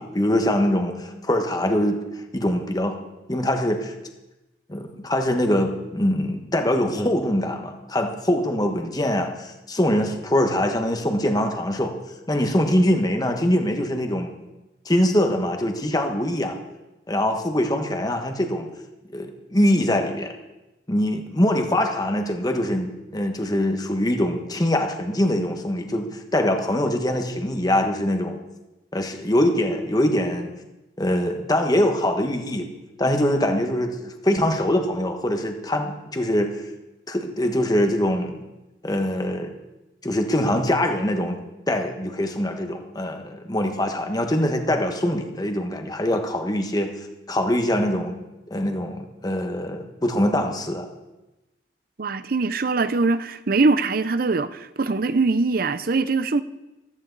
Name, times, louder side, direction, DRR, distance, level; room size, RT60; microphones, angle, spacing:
voice 1, 0.0-2.0 2.3-3.0 3.3-3.9 4.7-11.9 12.3-14.3 14.8-16.6 17.1-18.7 19.1-20.3 20.9-28.4 28.9-30.5 31.0-32.7 33.0-36.6 37.1-38.4 38.8-39.5 40.0-41.4 41.7-46.9 47.3-48.2 48.5-50.9, left 1 dB, 20° left, 1.4 m, -23 dB
voice 2, 52.0-56.4, right 3 dB, 55° right, 0.6 m, -22 dB
15.0 x 14.0 x 4.0 m
head